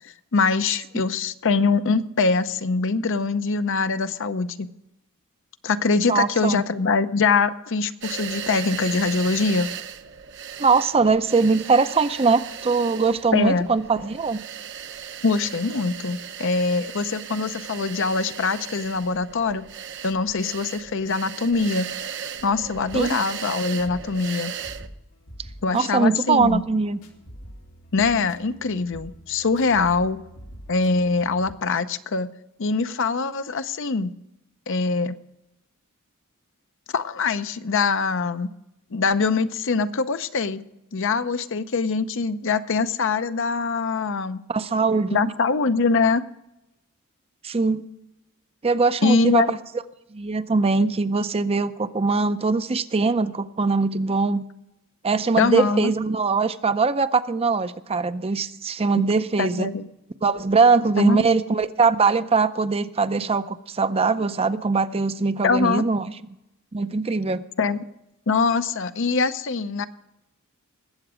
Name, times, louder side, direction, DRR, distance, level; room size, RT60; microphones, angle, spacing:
voice 1, 0.3-4.7 5.6-9.7 13.3-13.7 15.2-19.7 20.0-21.9 22.4-24.5 25.6-26.6 27.9-30.2 30.7-32.3 32.6-34.1 34.7-35.2 36.9-38.5 38.9-40.6 40.9-44.4 45.1-46.2 49.0-49.5 55.4-55.9 59.4-59.9 61.0-61.2 65.4-65.9 67.6-67.8 68.3-69.9, left 4 dB, 60° left, 11 dB, 0.7 m, -23 dB
voice 2, 6.1-6.6 10.6-14.4 22.9-23.2 25.7-27.0 44.5-45.2 47.4-47.8 48.6-49.6 50.1-54.4 55.0-59.7 60.2-66.1 66.7-67.4, right 4 dB, 30° right, 12 dB, 0.5 m, -21 dB
sound 1, 8.0-24.9, right 8 dB, 60° right, 0.8 m, -37 dB
sound 2, 22.9-31.5, equal, 85° left, 2.1 m, -45 dB
20.5 x 7.9 x 5.0 m, 0.88 s
head